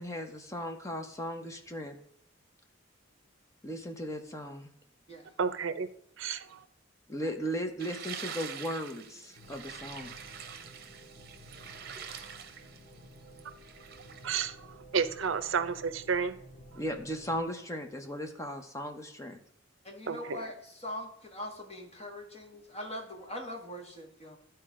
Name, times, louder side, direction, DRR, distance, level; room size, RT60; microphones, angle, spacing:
voice 1, 0.0-2.0 3.6-4.7 7.1-10.2 16.7-19.4, equal, 15° left, 4 dB, 0.8 m, -37 dB
voice 2, 5.4-5.9 6.2-6.6 14.2-16.4 20.1-20.4, right 6 dB, 75° right, 13 dB, 0.6 m, -31 dB
sound 1, 7.8-14.4, right 7 dB, 50° right, 0.8 m, -45 dB
sound 2, 9.3-17.4, equal, 55° left, 2.1 m, -53 dB
voice 3, 19.8-24.4, left 1 dB, 30° left, 1 dB, 1.6 m, -42 dB
12.0 x 4.5 x 3.7 m, 0.70 s
head